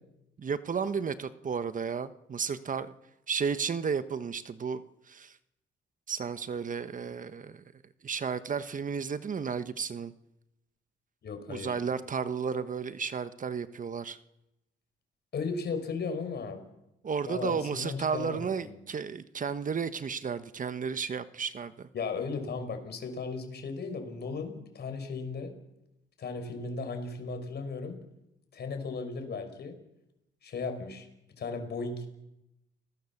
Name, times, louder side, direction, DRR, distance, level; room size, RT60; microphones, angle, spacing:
voice 1, 0.4-2.9 3.3-4.8 5.1-5.4 6.1-7.6 8.0-10.1 11.5-14.2 17.0-21.9, right 6 dB, 40° right, 12 dB, 1.2 m, -33 dB
voice 2, 11.2-11.7 15.3-16.6 17.2-18.8 21.9-25.5 26.2-28.0 28.5-29.8 30.4-31.1 31.4-32.1, left 4 dB, 55° left, 7 dB, 5.4 m, -36 dB
30.0 x 19.5 x 7.3 m, 0.90 s
cardioid pair, 90°, 20 cm